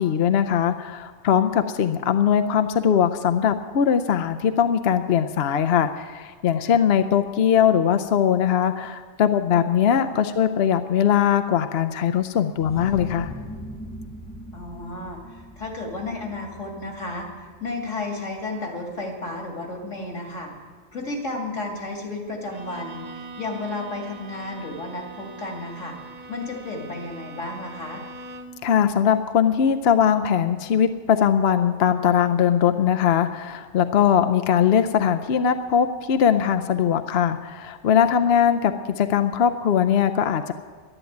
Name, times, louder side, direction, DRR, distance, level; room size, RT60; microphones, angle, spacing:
voice 1, 0.0-13.3 28.6-40.5, left 8 dB, 60° left, 9 dB, 0.8 m, -20 dB
sound 1, 12.6-18.1, left 1 dB, 15° left, 0.7 m, -40 dB
voice 2, 14.5-20.5 20.9-26.0 26.3-28.0, left 2 dB, 80° left, 1 dB, 2.9 m, -33 dB
Bowed string instrument, 22.5-28.7, right 3 dB, 40° right, 0.9 m, -42 dB
11.5 x 11.0 x 9.3 m, 1.5 s
omnidirectional pair, 1.3 m